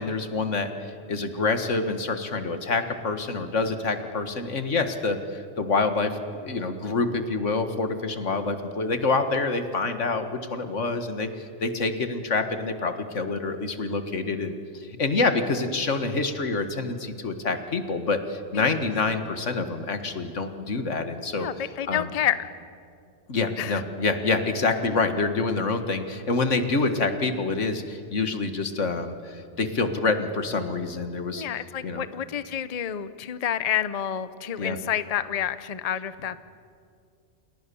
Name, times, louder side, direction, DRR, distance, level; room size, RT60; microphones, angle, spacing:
voice 1, 0.0-21.5 21.9-22.1 23.3-31.4 31.8-32.1 34.6-34.8, left 3 dB, 80° left, 8 dB, 2.1 m, -27 dB
voice 2, 21.4-22.5 23.6-23.8 31.3-36.4, left 10 dB, 35° left, 13 dB, 0.8 m, -29 dB
29.0 x 28.0 x 7.0 m, 2.3 s
omnidirectional pair, 1.2 m